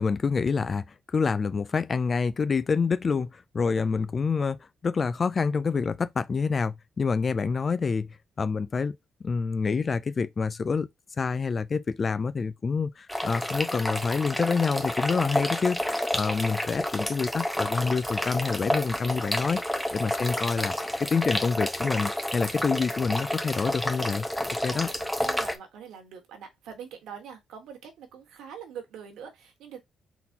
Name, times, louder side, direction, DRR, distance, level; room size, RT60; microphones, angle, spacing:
voice 1, 0.0-9.0 9.2-10.9 11.2-24.9, left 5 dB, 40° left, 0.4 m, -27 dB
sound 1, 13.1-25.6, left 1 dB, 5° left, 0.8 m, -30 dB
voice 2, 24.6-29.8, right 7 dB, 80° right, 1.4 m, -44 dB
4.0 x 3.9 x 2.8 m
cardioid pair, 90°, 0 cm